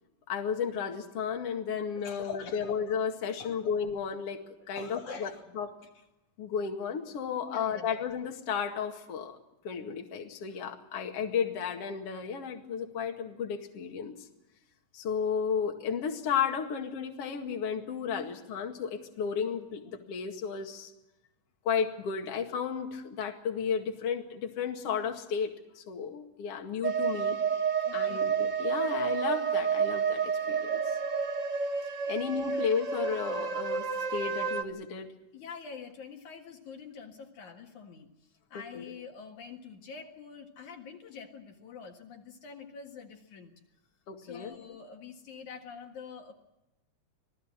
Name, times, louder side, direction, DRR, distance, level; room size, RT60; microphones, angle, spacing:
voice 1, 0.3-4.4 4.7-5.7 6.4-9.4 9.6-14.2 14.9-20.9 21.6-27.4 27.9-30.8 32.1-35.1 38.7-38.9 44.1-44.6, left 7 dB, 50° left, 3 dB, 2.8 m, -33 dB
voice 2, 1.9-2.7 3.2-3.7 4.7-5.5 5.8-6.0 7.5-8.0 27.8-28.3 32.5-32.6 35.3-43.5 44.2-46.3, left 5 dB, 65° left, 3 dB, 3.1 m, -46 dB
sound 1, 26.8-34.6, right 6 dB, 75° right, 0.7 m, -30 dB
26.5 x 18.0 x 7.5 m, 0.92 s
omnidirectional pair, 3.7 m